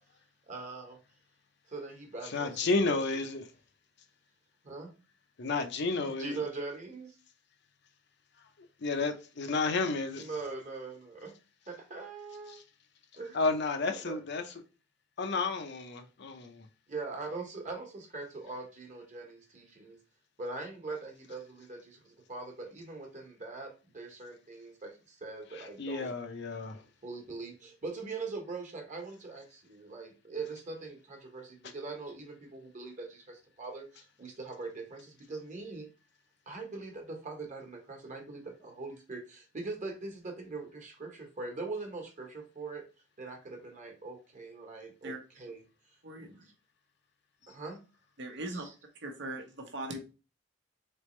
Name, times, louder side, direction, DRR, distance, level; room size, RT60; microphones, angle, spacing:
voice 1, 0.5-1.0 1.7-3.0 4.6-4.9 6.0-7.2 10.1-11.3 11.7-12.6 13.2-13.4 14.0-14.2 16.9-20.0 20.4-26.2 27.0-35.9 36.5-42.9 43.2-45.6 46.2-46.5 47.5-47.8 48.5-48.7, right 3 dB, 40° right, 1.2 m, -42 dB
voice 2, 2.3-3.4 5.4-6.3 8.8-10.3 12.5-12.6 13.3-14.4 15.2-16.7 25.5-26.8, left 3 dB, 60° left, 0.6 m, -31 dB
voice 3, 48.2-48.7 49.0-50.0, right 1 dB, 65° right, 0.9 m, -39 dB
4.1 x 3.4 x 3.1 m
head